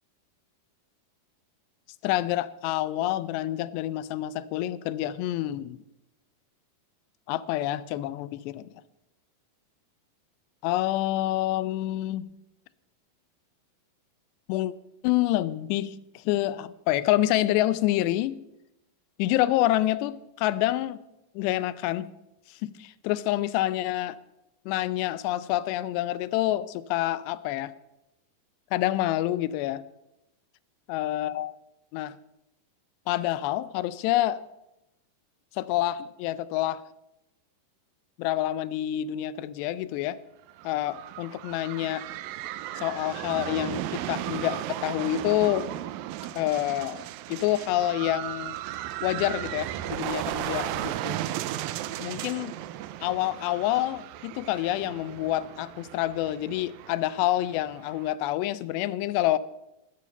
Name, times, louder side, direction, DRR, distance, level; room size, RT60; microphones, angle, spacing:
voice 1, 2.0-5.8 7.3-8.7 10.6-12.3 14.5-14.7 15.0-18.4 19.2-21.0 21.4-22.1 22.6-24.2 24.7-27.7 28.7-29.8 30.9-31.5 31.9-32.2 33.1-34.4 35.5-36.8 38.2-40.2 40.6-42.1 42.8-45.7 46.4-48.6 49.0-51.2 52.0-52.5 53.0-59.4, left 14 dB, 90° left, 17 dB, 2.8 m, -27 dB
sound 1, 40.5-58.1, right 13 dB, 85° right, 2.1 m, -35 dB
13.5 x 13.0 x 5.4 m, 0.91 s
omnidirectional pair, 4.8 m